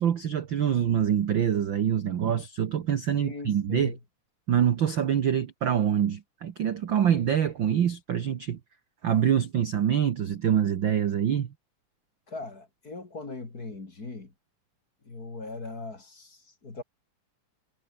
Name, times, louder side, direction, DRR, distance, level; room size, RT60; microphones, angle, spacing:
voice 1, 0.0-4.0 4.5-8.6 9.0-11.5, right 9 dB, 55° right, 1.3 m, -25 dB
voice 2, 3.2-4.0 12.3-14.3 15.1-16.8, left 3 dB, 30° left, 3.6 m, -39 dB
omnidirectional pair, 3.8 m